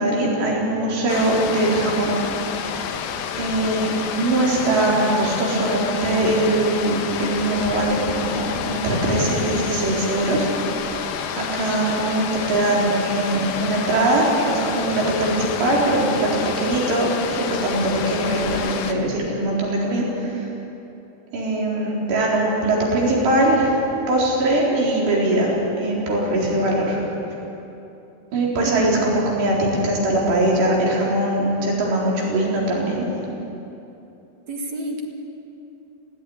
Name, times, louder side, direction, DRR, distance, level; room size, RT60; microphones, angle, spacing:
voice 1, 0.0-2.9 3.4-10.9 11.4-20.5 21.3-23.8 24.1-27.0 28.3-33.1, right 1 dB, 85° right, -4 dB, 6.3 m, -21 dB
sound 1, 1.1-18.9, left 7 dB, 70° left, 2.7 m, -29 dB
voice 2, 28.6-28.9 34.5-35.1, right 2 dB, 50° right, 1 dB, 2.7 m, -29 dB
19.5 x 17.0 x 10.0 m, 2.9 s
omnidirectional pair, 4.9 m